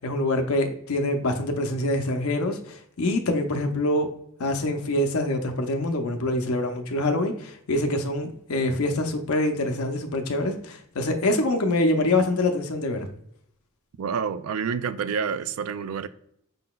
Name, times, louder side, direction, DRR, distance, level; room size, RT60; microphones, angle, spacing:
voice 1, 0.0-4.1 4.4-13.1, left 1 dB, 85° left, 0.6 m, -25 dB
voice 2, 14.0-16.1, right 6 dB, 90° right, 0.4 m, -28 dB
5.3 x 3.8 x 2.2 m
head